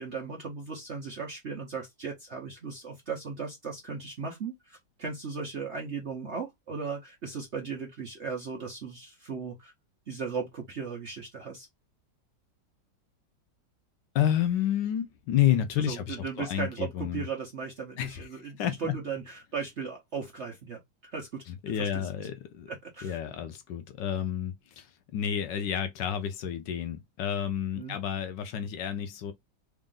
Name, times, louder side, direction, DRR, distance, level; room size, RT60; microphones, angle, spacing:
voice 1, 0.0-9.7 10.1-11.7 15.9-22.0 22.7-23.2 27.8-28.0, right 5 dB, 55° right, 0.8 m, -37 dB
voice 2, 14.1-17.3 18.0-18.9 21.5-22.7 23.0-29.3, left 10 dB, 75° left, 1.2 m, -30 dB
3.5 x 2.5 x 3.7 m
omnidirectional pair, 2.1 m